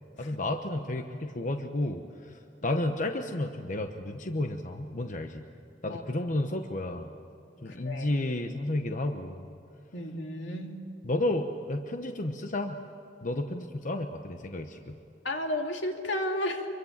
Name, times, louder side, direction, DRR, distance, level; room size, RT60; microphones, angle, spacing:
voice 1, 0.2-5.4 5.8-7.1 7.6-9.5 11.0-12.8 13.2-15.0, left 1 dB, 45° left, 5 dB, 1.0 m, -32 dB
voice 2, 7.7-8.1 9.9-10.8 15.2-16.7, left 1 dB, 85° left, 3 dB, 2.6 m, -33 dB
26.0 x 23.0 x 7.4 m, 2.9 s
head